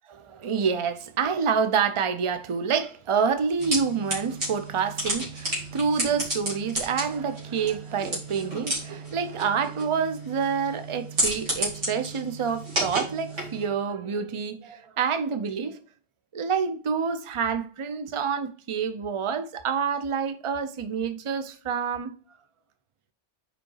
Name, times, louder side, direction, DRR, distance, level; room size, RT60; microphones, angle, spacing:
voice 1, 0.1-15.8 16.3-22.1, right 6 dB, 35° right, 0.5 m, -27 dB
sound 1, 3.6-13.7, right 1 dB, 70° right, 2.8 m, -32 dB
5.1 x 5.0 x 4.6 m
omnidirectional pair, 1.2 m